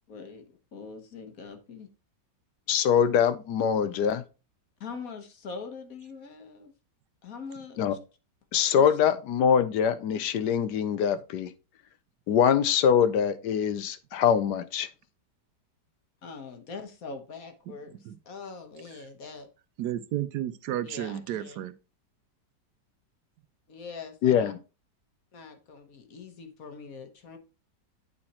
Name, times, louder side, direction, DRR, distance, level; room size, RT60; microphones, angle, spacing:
voice 1, 0.1-0.4 0.7-1.9 4.8-6.7 7.2-8.0 8.8-8.9 16.2-19.5 20.8-21.6 23.7-24.5 25.3-27.4, left 4 dB, 55° left, 1.5 m, -43 dB
voice 2, 2.7-4.2 7.8-8.0 8.5-11.5 12.3-14.9 24.2-24.6, left 8 dB, 75° left, 1.2 m, -23 dB
voice 3, 19.8-21.7, right 12 dB, 75° right, 1.1 m, -32 dB
8.6 x 4.3 x 4.3 m
omnidirectional pair, 1.8 m